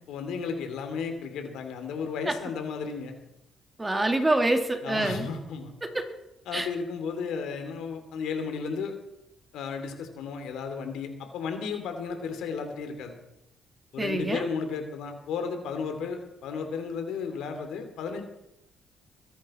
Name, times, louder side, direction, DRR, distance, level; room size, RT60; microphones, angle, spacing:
voice 1, 0.1-3.1 4.8-5.7 6.5-8.9 9.5-13.2 13.9-18.2, left 5 dB, 85° left, 6 dB, 2.7 m, -34 dB
voice 2, 3.8-5.3 5.8-6.0 6.5-6.7 14.0-14.4, right 1 dB, 15° right, 4 dB, 2.4 m, -26 dB
22.5 x 10.0 x 4.3 m, 0.84 s
cardioid pair, 90°, 0 cm